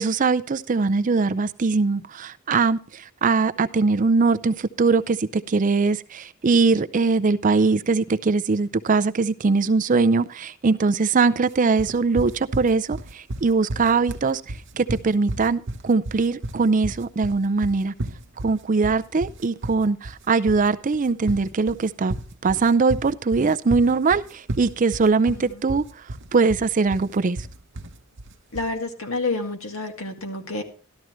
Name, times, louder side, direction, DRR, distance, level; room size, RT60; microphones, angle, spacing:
voice 1, 0.0-14.4 14.8-17.9 18.4-22.1 22.4-25.8 26.3-27.4, right 4 dB, 40° right, 0.5 m, -21 dB
sound 1, 11.8-28.8, right 1 dB, 60° right, 0.9 m, -33 dB
voice 2, 28.5-30.6, left 3 dB, 80° left, 2.1 m, -29 dB
13.0 x 12.5 x 3.1 m
head